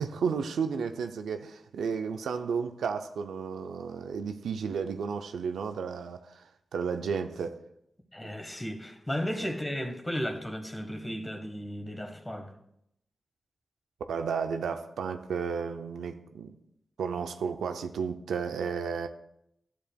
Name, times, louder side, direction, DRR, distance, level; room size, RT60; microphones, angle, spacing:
voice 1, 0.0-6.4 6.7-7.6 8.2-8.3 14.1-16.6 17.0-19.1, right 6 dB, 90° right, 0.4 m, -33 dB
voice 2, 8.1-12.5, equal, 20° left, 1.4 m, -34 dB
12.0 x 7.0 x 2.3 m
supercardioid pair, 40°, 0 cm